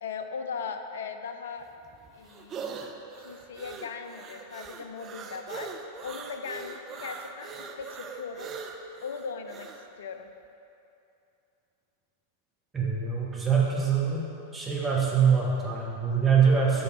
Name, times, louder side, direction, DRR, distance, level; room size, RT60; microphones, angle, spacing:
voice 1, 0.0-1.7 2.1-2.6 3.2-5.7 6.0-8.5 9.0-9.7 10.0-10.3, left 5 dB, 60° left, 7 dB, 0.4 m, -38 dB
sound 1, 1.6-9.9, right 5 dB, 30° right, 0.4 m, -41 dB
voice 2, 12.7-14.2 14.5-16.8, right 6 dB, 15° right, -5 dB, 1.2 m, -24 dB
6.9 x 3.5 x 4.8 m, 2.7 s
figure-of-eight pair, 90°, 0 cm